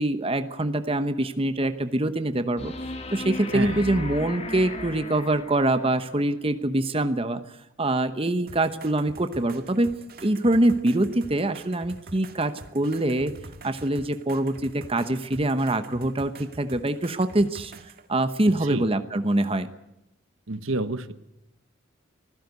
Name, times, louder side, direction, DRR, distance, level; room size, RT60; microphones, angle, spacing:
voice 1, 0.0-2.7 3.1-7.4 7.8-13.3 13.6-17.7 18.1-19.7, right 1 dB, 25° right, 10 dB, 1.0 m, -24 dB
sound 1, 2.6-5.9 8.6-8.7, left 2 dB, 30° left, 3.1 m, -36 dB
voice 2, 3.4-3.8 18.5-18.9 20.5-21.1, right 2 dB, 75° right, 12 dB, 1.3 m, -29 dB
sound 2, 8.5-18.1 19.4-19.5, right 2 dB, 45° right, 1.9 m, -46 dB
24.5 x 15.5 x 8.2 m, 0.88 s
head